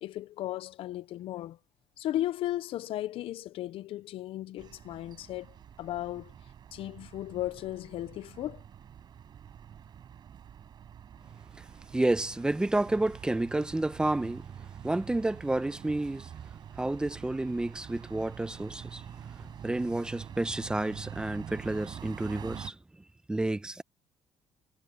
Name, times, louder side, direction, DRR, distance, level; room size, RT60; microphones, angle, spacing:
voice 1, 0.0-1.6 2.0-5.5 5.8-6.3 6.7-8.6, left 14 dB, 60° left, 0.4 m, -35 dB
sound 1, 4.6-22.7, right 9 dB, 40° right, 8.0 m, -46 dB
voice 2, 11.9-14.5 14.8-16.3 16.8-19.0 19.6-22.8 23.3-23.8, right 2 dB, 10° right, 0.8 m, -30 dB
cardioid pair, 165°, 11 cm